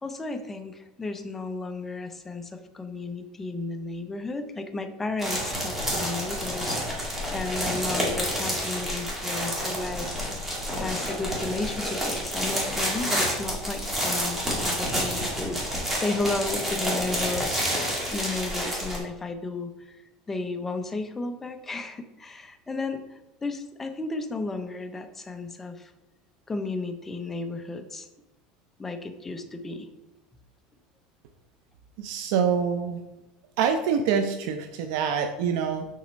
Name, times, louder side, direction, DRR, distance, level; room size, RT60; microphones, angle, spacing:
voice 1, 0.0-10.5 10.7-17.5 18.1-20.0 20.3-25.9 26.5-28.1 28.8-29.9, left 3 dB, 10° left, 7 dB, 0.6 m, -33 dB
sound 1, 5.2-19.0, equal, 10° right, 2.1 m, -29 dB
voice 2, 32.0-33.0 33.6-35.9, right 7 dB, 70° right, 6 dB, 0.6 m, -25 dB
7.4 x 4.2 x 5.1 m, 0.98 s
cardioid pair, 155°, 2 cm